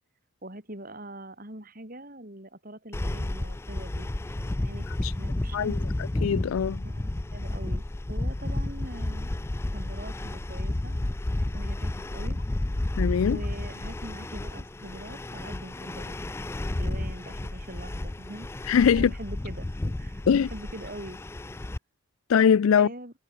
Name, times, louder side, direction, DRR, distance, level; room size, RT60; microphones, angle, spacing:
voice 1, 0.4-4.1 4.4-5.8 6.8-9.3 9.7-11.0 11.4-12.4 13.3-16.2 16.8-18.5 19.0-20.2 20.5-21.2 22.8-23.1, right 1 dB, 45° right, 7.1 m, -43 dB
sound 1, 2.9-21.8, left 1 dB, 10° left, 0.3 m, -32 dB
voice 2, 6.2-6.8 13.0-13.4 18.7-19.1 20.3-20.5 22.3-22.9, left 7 dB, 85° left, 0.4 m, -21 dB
head